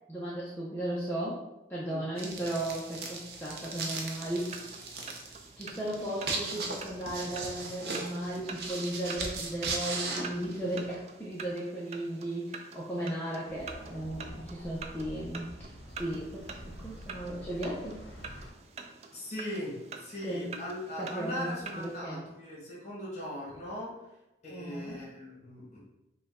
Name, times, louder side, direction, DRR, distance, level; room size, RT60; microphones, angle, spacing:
voice 1, 0.1-4.7 5.6-18.0 20.2-20.5 21.0-22.2 24.5-25.0, right 1 dB, 10° left, -7 dB, 0.6 m, -36 dB
sound 1, 2.2-11.0, right 3 dB, 60° right, 0.7 m, -38 dB
sound 2, 4.0-22.0, right 5 dB, 35° right, 0.3 m, -47 dB
sound 3, 13.5-18.5, equal, 80° left, 0.7 m, -47 dB
voice 2, 19.1-23.9 24.4-25.8, left 1 dB, 40° left, -5 dB, 1.4 m, -39 dB
5.0 x 2.3 x 3.6 m, 0.94 s
head